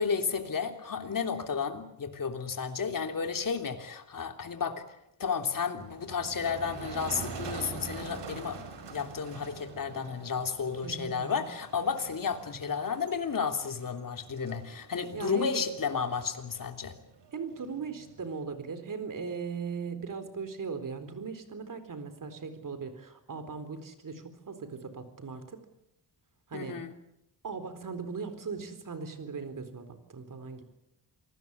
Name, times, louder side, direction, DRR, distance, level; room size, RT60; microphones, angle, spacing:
voice 1, 0.0-16.9 26.5-26.9, left 6 dB, 50° left, 5 dB, 3.2 m, -32 dB
Motor vehicle (road), 5.8-18.4, right 4 dB, 75° right, 4.9 m, -45 dB
voice 2, 10.8-11.4 15.1-15.6 17.3-25.6 26.5-26.8 27.4-30.6, right 5 dB, 50° right, 10 dB, 4.1 m, -39 dB
28.0 x 19.0 x 8.3 m, 0.84 s
wide cardioid pair, 120°, 42 cm